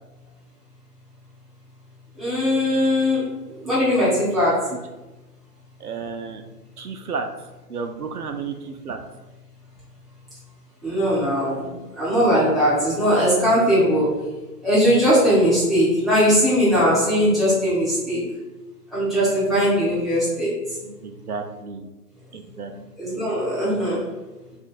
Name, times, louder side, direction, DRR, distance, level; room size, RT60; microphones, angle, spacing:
voice 1, 2.2-3.2 3.6-4.7 10.8-11.7 12.0-14.2 14.6-18.2 18.9-20.5 23.0-24.0, equal, ahead, -12 dB, 0.5 m, -19 dB
voice 2, 5.8-6.4 6.8-7.3 7.7-9.0 19.5-19.7 21.0-21.9 22.3-22.7, right 5 dB, 70° right, 6 dB, 0.5 m, -32 dB
2.6 x 2.5 x 3.7 m, 1.1 s
figure-of-eight pair, 155°, 47 cm